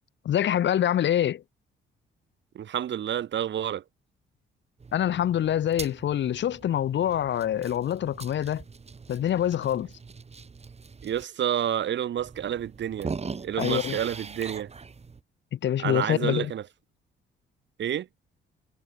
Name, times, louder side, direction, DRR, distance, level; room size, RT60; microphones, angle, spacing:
voice 1, 0.2-1.4 4.9-8.6 9.1-9.9 13.6-14.0 15.5-16.5, left 10 dB, 65° left, 2.3 m, -25 dB
voice 2, 2.6-3.8 11.0-13.1 13.4-14.7 15.8-16.6 17.8-18.1, right 10 dB, 65° right, 3.6 m, -29 dB
sound 1, 4.8-11.2 11.8-11.9 12.2-15.2, right 4 dB, 30° right, 4.7 m, -41 dB
cardioid pair, 90°, 20 cm